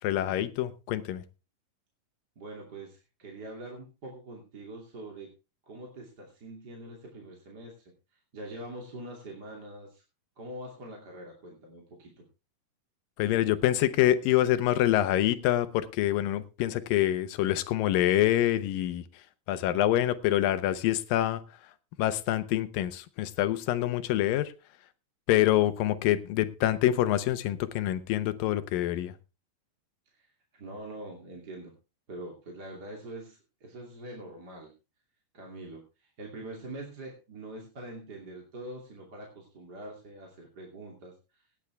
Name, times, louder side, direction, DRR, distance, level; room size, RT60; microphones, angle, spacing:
voice 1, 0.0-1.2 13.2-19.0 19.5-21.4 22.0-24.5 25.3-29.1, left 13 dB, 85° left, 13 dB, 2.6 m, -26 dB
voice 2, 2.4-5.3 5.6-10.0 10.4-12.3 30.1-31.7 32.1-34.7 35.3-41.4, right 1 dB, 30° right, 0 dB, 2.8 m, -44 dB
18.5 x 9.1 x 3.4 m, 0.29 s
omnidirectional pair, 3.9 m